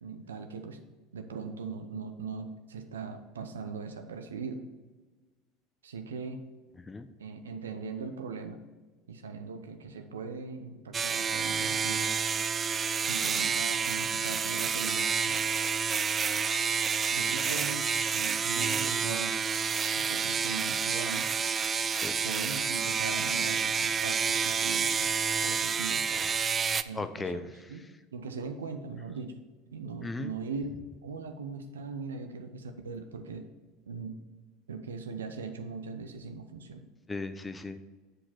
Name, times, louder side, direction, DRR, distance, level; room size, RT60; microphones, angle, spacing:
voice 1, 0.0-0.8 1.1-4.6 5.8-6.4 7.2-8.6 9.1-12.1 13.1-15.4 17.1-17.9 18.1-19.3 20.0-21.3 22.2-25.1 25.4-26.0 26.8-29.4 29.7-30.7 31.0-33.5 33.9-34.1 34.7-36.9, right 5 dB, 80° right, 7 dB, 0.7 m, -40 dB
voice 2, 6.8-7.1 21.9-22.1 26.1-26.4 26.9-27.7 30.0-30.3 37.1-37.8, left 3 dB, 15° left, 10 dB, 0.7 m, -37 dB
sound 1, 10.9-26.8, right 6 dB, 30° right, 0.3 m, -29 dB
7.8 x 6.6 x 4.4 m, 1.3 s
hypercardioid pair, 75°, 0 cm